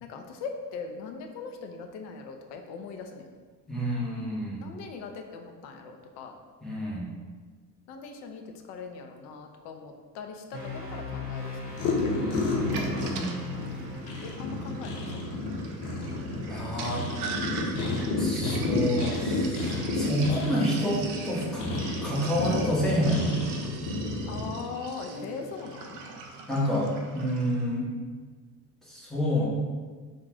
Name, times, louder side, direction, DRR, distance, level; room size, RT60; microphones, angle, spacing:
voice 1, 0.0-3.3 4.6-6.4 7.9-11.8 13.2-13.8 14.2-15.4 24.3-26.0, left 5 dB, 35° left, 4 dB, 0.4 m, -40 dB
voice 2, 3.7-4.6 6.6-7.0 12.2-13.4 16.5-17.1 18.2-21.7 22.0-23.4 26.5-27.9 28.9-29.5, equal, ahead, -7 dB, 1.1 m, -29 dB
sound 1, 10.5-16.7, left 4 dB, 25° right, 1.5 m, -39 dB
sound 2, 11.7-24.5, left 2 dB, 55° left, 0.9 m, -31 dB
Sink (filling or washing), 12.5-27.5, right 4 dB, 40° right, 0.6 m, -42 dB
3.7 x 2.4 x 4.2 m, 1.5 s
figure-of-eight pair, 70°, 50 cm